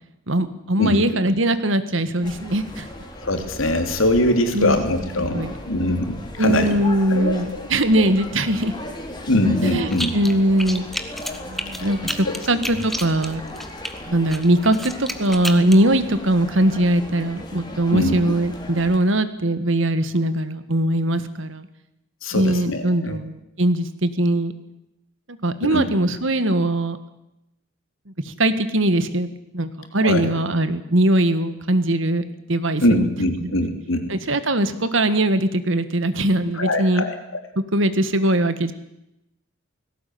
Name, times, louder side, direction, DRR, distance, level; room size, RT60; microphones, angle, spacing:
voice 1, 0.3-2.9 4.5-4.8 5.2-5.5 6.4-8.7 9.7-10.8 11.4-13.4 14.1-21.7 22.3-24.5 25.4-27.0 28.3-33.1 33.4-33.6 34.1-37.1 37.7-38.7, right 1 dB, 70° right, 12 dB, 1.7 m, -21 dB
sound 1, 2.2-19.0, left 1 dB, 20° left, 3.1 m, -37 dB
voice 2, 3.2-6.8 7.1-7.7 9.2-10.1 12.2-12.4 17.9-18.3 22.2-23.2 25.6-25.9 30.0-30.3 32.8-34.1 36.5-37.2, left 1 dB, 75° left, 6 dB, 3.2 m, -22 dB
sound 2, 9.9-10.3 10.6-13.9 14.3-15.8, equal, ahead, 1.3 m, -30 dB
19.0 x 17.0 x 9.4 m, 0.86 s
head